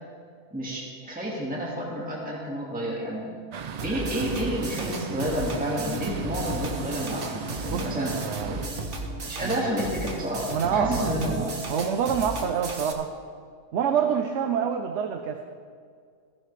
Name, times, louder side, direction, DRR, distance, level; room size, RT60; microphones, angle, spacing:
voice 1, 0.5-3.3 3.8-8.1 8.5-8.6 9.2-11.5, equal, 5° right, -5 dB, 1.9 m, -30 dB
sound 1, 3.5-8.7, right 6 dB, 90° right, 0.3 m, -37 dB
sound 2, 3.8-12.9, right 2 dB, 50° right, 1.3 m, -35 dB
voice 2, 7.7-8.6 9.4-9.7 10.5-13.1 13.7-15.4, right 7 dB, 70° right, 5 dB, 1.0 m, -27 dB
15.0 x 14.0 x 3.3 m, 2.1 s
omnidirectional pair, 1.3 m